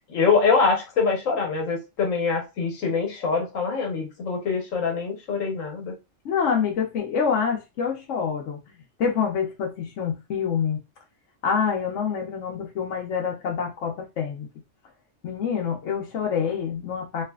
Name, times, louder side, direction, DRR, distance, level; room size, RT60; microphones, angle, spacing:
voice 1, 0.1-5.9, left 5 dB, 90° left, 1.4 m, -24 dB
voice 2, 6.2-8.6 9.0-10.8 11.4-14.5 15.2-17.2, left 6 dB, 75° left, 1.0 m, -26 dB
3.2 x 2.6 x 2.3 m
omnidirectional pair, 1.3 m